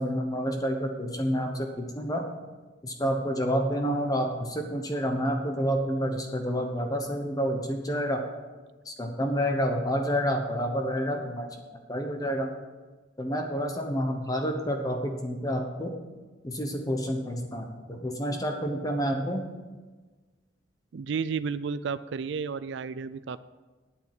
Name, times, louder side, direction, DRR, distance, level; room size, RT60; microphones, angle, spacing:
voice 1, 0.0-2.3 2.8-8.2 8.8-11.5 11.9-12.5 13.2-15.9 16.4-19.5, equal, 20° left, 3 dB, 1.0 m, -29 dB
voice 2, 20.9-23.4, right 5 dB, 65° right, 14 dB, 0.4 m, -32 dB
9.4 x 8.2 x 7.7 m, 1.3 s
head